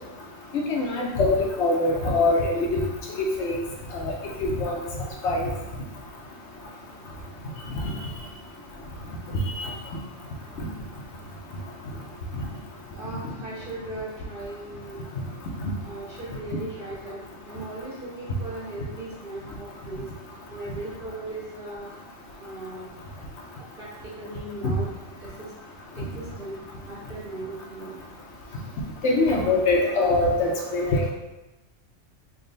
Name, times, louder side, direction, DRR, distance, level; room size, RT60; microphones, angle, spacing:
voice 1, 0.5-2.9 3.2-3.6 3.9-4.1 4.4-4.8 5.2-5.5 9.6-9.7 24.6-24.7 29.0-31.1, left 2 dB, 70° left, -1 dB, 0.9 m, -23 dB
voice 2, 12.9-15.0 15.8-17.2 17.4-20.1 20.5-21.9 22.4-22.9 23.6-24.9 25.2-25.5 25.9-26.6 26.9-28.0, right 2 dB, 45° right, -7 dB, 1.4 m, -38 dB
3.6 x 2.3 x 3.8 m, 1.0 s
omnidirectional pair, 1.3 m